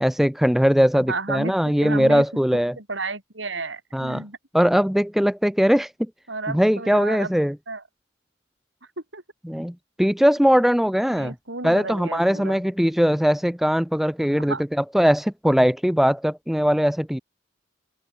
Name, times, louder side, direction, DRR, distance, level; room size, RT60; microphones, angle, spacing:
voice 1, 0.0-2.8 3.9-4.2 4.5-6.1 6.5-7.6 9.4-11.3 11.6-17.2, equal, ahead, 0.5 m, -20 dB
voice 2, 0.9-1.5 1.8-2.2 2.8-4.4 6.3-7.3 7.7-7.8 9.1-9.2 11.1-12.6 14.4-14.6, right 3 dB, 85° right, 7.0 m, -32 dB
open air
head